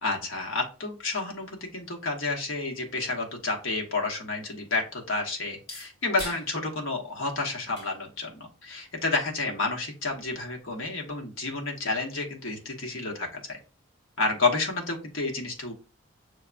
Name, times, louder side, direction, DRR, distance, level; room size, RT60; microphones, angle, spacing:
voice 1, 0.0-13.6 14.2-15.7, left 3 dB, 75° left, 1 dB, 1.2 m, -30 dB
sound 1, 5.5-11.2, left 2 dB, 55° left, 1.7 m, -48 dB
6.4 x 2.3 x 2.5 m, 0.34 s
head